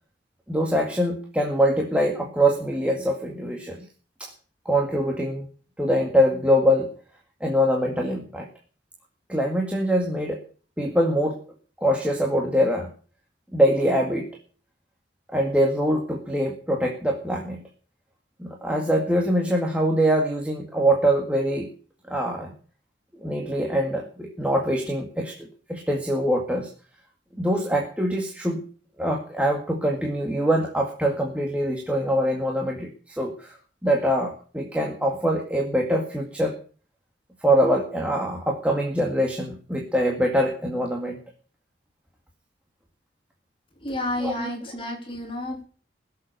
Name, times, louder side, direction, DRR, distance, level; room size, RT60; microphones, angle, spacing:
voice 1, 0.5-3.8 4.2-4.3 4.7-5.5 5.8-6.9 7.4-8.5 9.3-10.4 10.8-11.4 11.8-12.9 13.5-14.3 15.3-17.6 18.4-21.7 22.1-22.5 23.2-26.7 27.4-28.6 29.0-33.5 33.8-36.5 37.4-41.2 44.2-44.5, equal, 5° right, 0 dB, 2.0 m, -23 dB
voice 2, 43.8-45.6, left 1 dB, 30° left, 2 dB, 3.4 m, -30 dB
21.5 x 7.7 x 6.7 m, 0.41 s
head